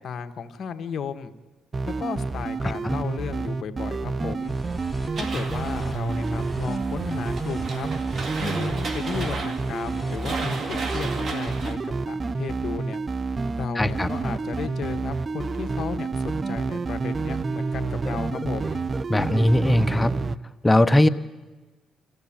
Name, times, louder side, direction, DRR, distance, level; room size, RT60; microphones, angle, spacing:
voice 1, 0.0-1.3 1.8-4.5 5.1-7.9 8.4-13.0 13.5-18.8, left 6 dB, 55° left, 7 dB, 1.5 m, -34 dB
sound 1, 1.7-20.4, right 4 dB, 30° right, 0.7 m, -29 dB
sound 2, 4.4-11.0, left 1 dB, ahead, 5.0 m, -42 dB
sound 3, 5.2-11.7, right 3 dB, 50° right, 2.2 m, -35 dB
voice 2, 13.8-14.1 19.1-20.1 20.6-21.1, left 1 dB, 15° left, 12 dB, 1.0 m, -19 dB
27.5 x 15.0 x 8.8 m, 1.2 s
cardioid pair, 90°, 0 cm